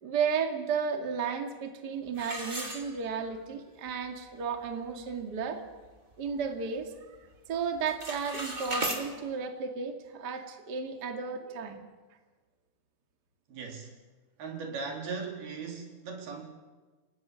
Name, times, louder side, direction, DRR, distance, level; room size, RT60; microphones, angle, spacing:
voice 1, 0.0-5.6 6.2-11.8, right 6 dB, 35° right, 5 dB, 2.2 m, -33 dB
sound 1, 2.1-3.4 3.9-4.0 4.5-4.6 5.0-5.3 5.8-6.9 7.1-7.5 7.7-9.0, right 1 dB, 15° right, 2.6 m, -36 dB
voice 2, 13.5-13.9 14.4-16.4, right 4 dB, 85° right, 2 dB, 5.6 m, -38 dB
29.5 x 18.5 x 7.8 m, 1.3 s
omnidirectional pair, 4.3 m